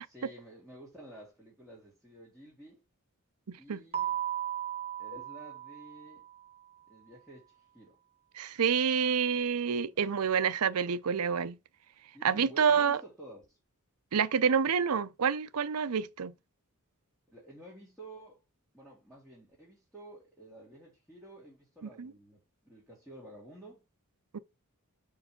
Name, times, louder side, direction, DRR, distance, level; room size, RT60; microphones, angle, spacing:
voice 1, 0.0-2.8 3.6-4.2 5.0-6.3 6.9-8.0 9.9-10.1 12.1-13.6 17.3-18.4 18.7-23.8, right 1 dB, ahead, 2.6 m, -51 dB
voice 2, 3.5-3.8 8.3-11.6 12.2-13.0 14.1-16.3 22.0-22.1 24.3-24.4, right 6 dB, 90° right, 0.6 m, -28 dB
Keyboard (musical), 3.9-6.5, right 11 dB, 25° right, 1.0 m, -36 dB
5.3 x 4.8 x 5.1 m
head